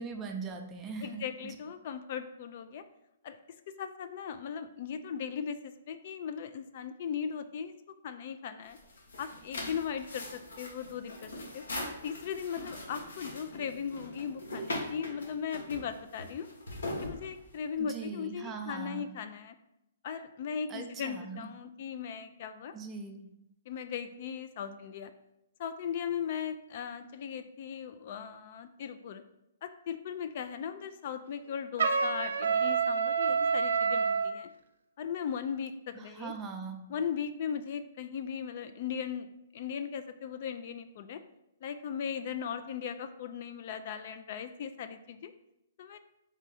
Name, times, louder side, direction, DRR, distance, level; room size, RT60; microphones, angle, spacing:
voice 1, 0.0-1.6 17.8-19.1 20.7-21.5 22.7-23.3 35.9-36.8, right 5 dB, 20° right, 4 dB, 0.5 m, -41 dB
voice 2, 1.0-2.8 3.2-3.4 3.8-7.7 8.0-8.8 9.2-11.6 12.0-16.5 17.0-19.5 20.0-22.7 23.7-25.1 25.6-29.2 29.6-34.5 35.0-36.3 36.9-39.3 39.5-41.2 41.6-45.3 45.8-46.0, left 7 dB, 50° left, 10 dB, 0.3 m, -38 dB
sound 1, 8.6-17.8, left 1 dB, 85° left, 1.3 m, -41 dB
Trumpet, 31.8-34.3, right 5 dB, 75° right, 0.4 m, -27 dB
3.6 x 3.6 x 4.1 m, 0.86 s
hypercardioid pair, 145°, 0 cm